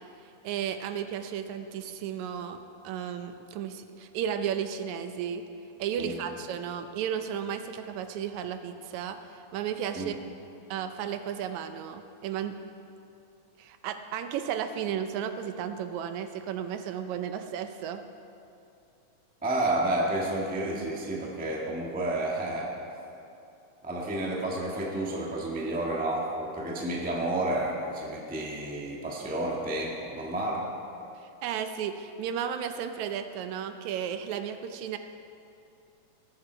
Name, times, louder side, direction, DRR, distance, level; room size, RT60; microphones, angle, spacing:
voice 1, 0.4-2.6 2.8-5.4 5.8-9.2 9.5-10.1 10.7-12.6 13.6-18.0 31.4-35.0, right 8 dB, 80° right, 8 dB, 1.9 m, -33 dB
voice 2, 19.4-22.7 23.8-30.7, right 1 dB, 5° right, -2 dB, 0.6 m, -30 dB
19.5 x 9.6 x 4.5 m, 2.7 s
omnidirectional pair, 3.4 m